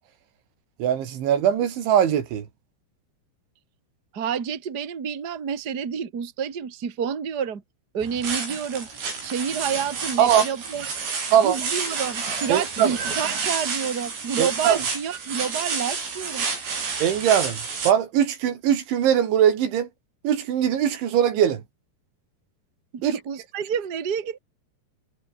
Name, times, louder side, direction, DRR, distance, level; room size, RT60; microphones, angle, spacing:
voice 1, 0.8-2.5 10.2-10.5 11.3-11.6 12.5-12.9 14.4-14.8 17.0-19.9 20.2-21.6 23.0-23.1, right 9 dB, 90° right, 5.3 m, -21 dB
voice 2, 4.1-7.6 7.9-8.9 9.2-10.9 11.4-16.5 22.9-24.4, right 7 dB, 30° right, 2.1 m, -29 dB
sound 1, 8.0-17.9, right 5 dB, 75° right, 10.0 m, -30 dB
omnidirectional pair, 5.2 m